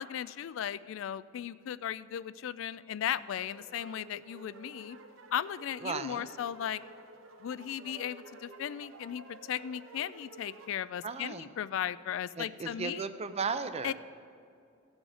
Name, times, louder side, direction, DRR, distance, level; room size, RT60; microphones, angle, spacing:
voice 1, 0.0-5.0 5.3-6.8 7.4-13.1 13.8-13.9, left 9 dB, 70° left, 16 dB, 0.3 m, -36 dB
sound 1, 3.4-10.8, right 3 dB, 85° right, 0.9 m, -52 dB
voice 2, 5.8-6.3 11.0-11.5 12.4-13.9, right 5 dB, 30° right, 10 dB, 0.5 m, -35 dB
16.0 x 6.3 x 4.9 m, 2.4 s
head